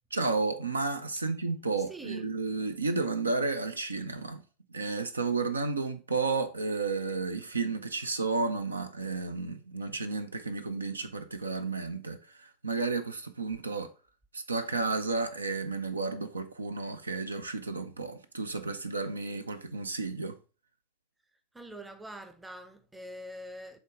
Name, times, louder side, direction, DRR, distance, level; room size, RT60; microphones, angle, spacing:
voice 1, 0.1-4.4 4.7-13.9 14.3-20.4, right 3 dB, 75° right, 0.6 m, -32 dB
voice 2, 1.9-2.2 21.5-23.8, right 1 dB, 5° right, 0.7 m, -44 dB
8.1 x 3.5 x 3.5 m
figure-of-eight pair, 90°, 0 cm